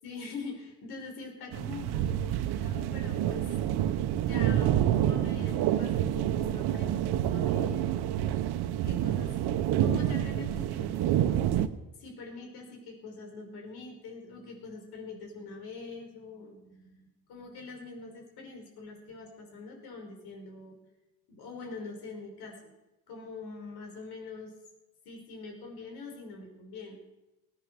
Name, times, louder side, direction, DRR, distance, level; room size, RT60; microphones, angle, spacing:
voice 1, 0.0-3.5 4.2-7.9 8.8-9.3 9.8-11.6 12.0-20.8 21.3-22.7 23.1-24.5 25.1-26.9, left 4 dB, 80° left, 1 dB, 5.5 m, -44 dB
sound 1, 1.5-11.7, right 11 dB, 85° right, 1.1 m, -28 dB
20.0 x 9.3 x 6.9 m, 1.0 s
cardioid pair, 160°, 38 cm